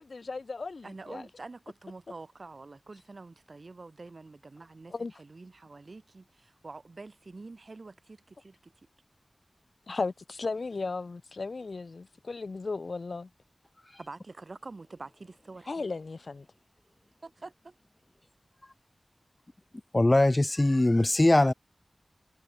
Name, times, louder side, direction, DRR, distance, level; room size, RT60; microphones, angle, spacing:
voice 1, 0.0-1.3 4.9-5.1 9.9-13.3 15.7-16.5, left 3 dB, 75° left, 1.6 m, -35 dB
voice 2, 0.8-8.7 14.0-15.9 17.2-17.7, right 3 dB, 65° right, 5.5 m, -46 dB
voice 3, 19.9-21.5, left 1 dB, 30° left, 0.6 m, -21 dB
wide cardioid pair, 50°, 0 cm